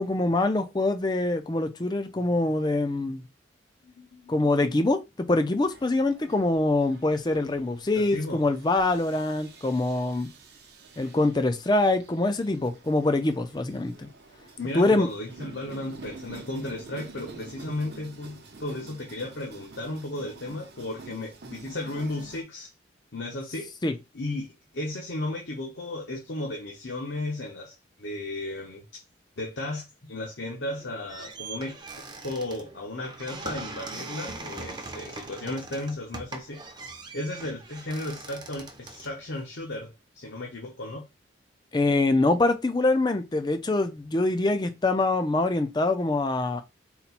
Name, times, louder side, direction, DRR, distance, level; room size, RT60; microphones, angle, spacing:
voice 1, 0.0-3.2 4.3-10.3 11.0-14.1 14.7-15.1 23.8-23.9 41.7-46.6, left 2 dB, 20° left, 0.4 m, -24 dB
voice 2, 3.8-4.7 8.0-8.4 14.6-22.7 23.1-23.7 24.1-29.0 29.4-36.6 37.1-41.0, left 1 dB, 70° left, 0.9 m, -35 dB
sound 1, 5.6-22.4, right 3 dB, 55° right, 0.8 m, -48 dB
sound 2, 30.7-39.8, right 3 dB, 20° right, 0.6 m, -41 dB
4.2 x 2.2 x 4.1 m
head